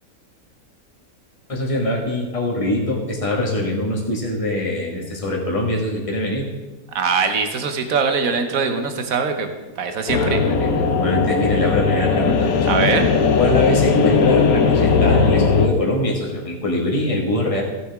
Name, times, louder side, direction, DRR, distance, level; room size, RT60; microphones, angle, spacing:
voice 1, 1.5-6.5 10.1-12.7 13.4-17.6, left 1 dB, 25° left, -2 dB, 2.0 m, -23 dB
voice 2, 6.9-9.5 9.8-10.4 12.7-13.1, right 5 dB, 70° right, 7 dB, 1.5 m, -21 dB
sound 1, 10.1-15.7, left 5 dB, 80° left, 1.3 m, -18 dB
16.0 x 7.8 x 3.7 m, 1.2 s
omnidirectional pair, 1.5 m